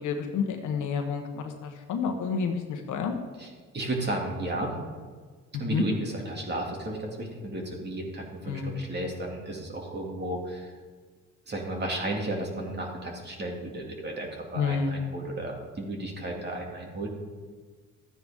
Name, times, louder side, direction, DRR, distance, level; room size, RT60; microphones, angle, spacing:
voice 1, 0.0-3.1 5.5-5.8 8.5-8.8 14.5-15.2, left 6 dB, 80° left, 4 dB, 1.4 m, -30 dB
voice 2, 3.4-4.7 5.6-10.7 11.5-17.1, right 1 dB, 35° right, 0 dB, 2.5 m, -33 dB
13.0 x 9.3 x 3.7 m, 1.5 s
cardioid pair, 90°, 30 cm